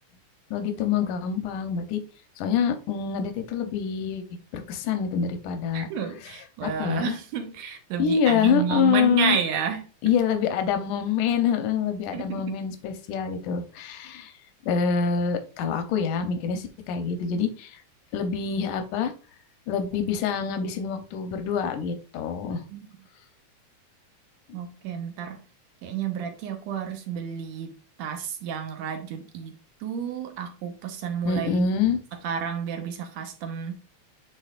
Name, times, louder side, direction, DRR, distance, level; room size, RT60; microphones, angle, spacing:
voice 1, 0.5-2.0 2.4-4.2 4.5-5.9 6.6-7.1 8.0-9.4 10.0-14.3 14.7-17.8 18.1-19.1 19.7-22.6 31.3-32.0, left 7 dB, 85° left, 2.4 m, -26 dB
voice 2, 5.7-9.9 12.1-12.5 22.7-22.9 24.5-25.4 25.8-29.5 29.8-31.7 32.1-33.8, right 7 dB, 70° right, 2.0 m, -31 dB
10.0 x 3.9 x 2.5 m
omnidirectional pair, 3.5 m